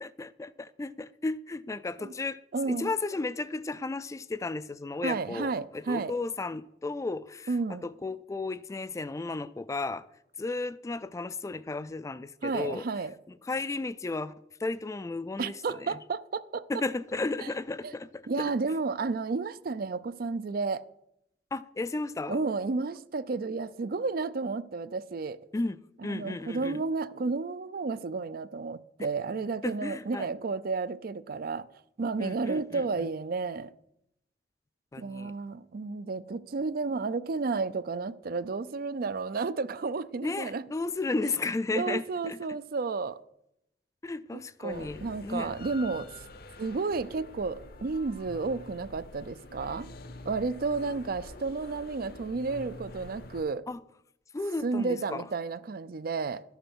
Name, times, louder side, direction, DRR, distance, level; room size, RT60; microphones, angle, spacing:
voice 1, 0.0-2.4 2.7-7.5 7.8-10.0 10.4-12.8 13.4-14.3 14.6-16.0 16.7-18.4 21.5-22.4 25.5-25.8 26.0-26.8 29.6-30.3 32.2-32.8 34.9-35.3 40.2-42.4 44.0-45.5 53.7-53.8 54.3-55.2, left 3 dB, 15° left, 0.3 m, -34 dB
voice 2, 2.5-2.9 5.0-6.1 7.5-7.8 12.4-13.1 15.4-16.6 17.8-17.9 18.3-20.8 22.3-25.4 26.1-31.7 32.0-33.7 35.0-40.6 41.7-43.2 44.3-46.1 46.6-49.9 50.3-53.6 54.6-56.4, right 4 dB, 55° right, 0.5 m, -32 dB
sound 1, 44.7-53.4, left 2 dB, 60° left, 0.8 m, -46 dB
12.0 x 6.6 x 6.1 m
head